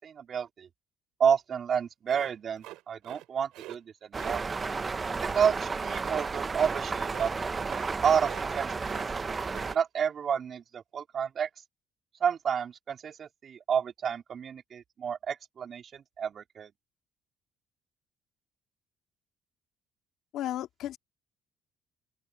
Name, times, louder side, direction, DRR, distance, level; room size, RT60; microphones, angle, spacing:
voice 1, 0.0-0.7 1.2-4.4 5.2-7.3 8.0-9.0 9.7-11.5 12.2-16.7, right 7 dB, 50° right, 4.1 m, -30 dB
sound 1, 2.1-3.3 3.5-3.8 4.1-4.4 5.9-6.2 6.6-6.8 7.0-7.3 7.6-7.9 8.2-9.1 9.4-9.8, right 17 dB, 80° right, 4.6 m, -46 dB
sound 2, 4.1-9.8, right 4 dB, 30° right, 0.8 m, -32 dB
voice 2, 20.3-21.0, left 12 dB, 70° left, 2.4 m, -34 dB
open air
cardioid pair, 90°, 0 cm